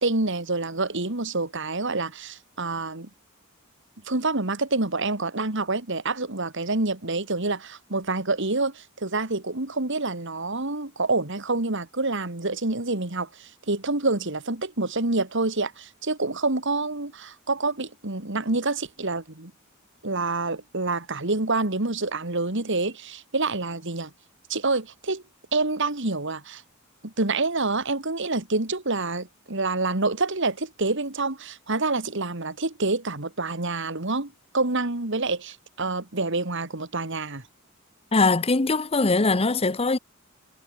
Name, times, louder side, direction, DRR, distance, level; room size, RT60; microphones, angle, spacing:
voice 1, 0.0-3.1 4.1-19.5 20.0-24.1 24.5-25.2 25.5-26.6 27.0-37.4, right 3 dB, 60° right, 2.5 m, -27 dB
voice 2, 38.1-40.0, left 3 dB, 30° left, 0.9 m, -21 dB
head